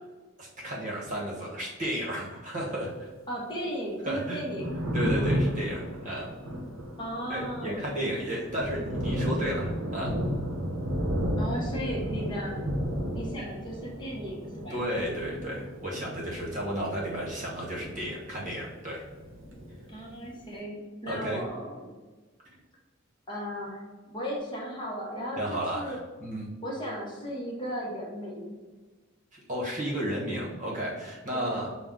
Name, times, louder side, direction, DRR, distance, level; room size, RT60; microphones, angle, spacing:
voice 1, 0.4-3.1 4.0-4.4 4.9-6.3 7.3-10.2 14.7-19.0 21.1-21.4 25.4-26.5 29.3-31.8, equal, 35° right, -3 dB, 1.0 m, -33 dB
voice 2, 3.3-4.7 7.0-8.0 11.4-12.6 13.1-14.8 19.9-21.9 23.3-26.0 26.6-28.5 31.3-31.6, equal, 25° left, -4 dB, 0.9 m, -36 dB
Thunder, 4.3-18.8 19.0-20.3, equal, 70° right, 0.8 m, -33 dB
5.8 x 2.3 x 3.7 m, 1.3 s
head